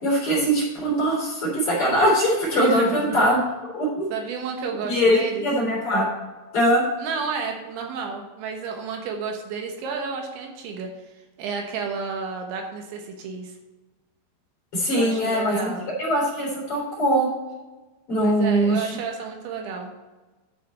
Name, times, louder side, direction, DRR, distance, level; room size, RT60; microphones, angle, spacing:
voice 1, 0.0-3.4 3.7-4.1 4.9-6.1 6.5-6.8 14.7-15.7 16.0-17.3 18.1-18.9, equal, 30° left, -5 dB, 4.0 m, -21 dB
voice 2, 2.6-3.2 4.1-5.5 7.0-10.9 11.4-13.6 14.9-15.9 18.2-19.9, right 5 dB, 75° right, 3 dB, 3.5 m, -31 dB
10.5 x 7.5 x 4.3 m, 1.2 s
omnidirectional pair, 5.4 m